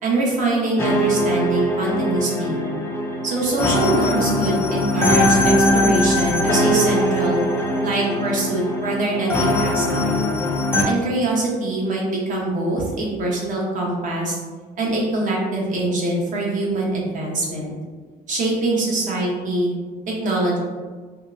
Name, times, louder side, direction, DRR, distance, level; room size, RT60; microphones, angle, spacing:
voice 1, 0.0-2.6 3.2-7.4 7.8-10.3 10.8-14.4 14.8-17.7 18.3-19.7 20.1-20.6, right 2 dB, 50° right, -3 dB, 0.8 m, -23 dB
sound 1, 0.8-10.8, left 1 dB, 15° left, 0.3 m, -21 dB
2.7 x 2.0 x 2.3 m, 1.4 s
cardioid pair, 110°, 17 cm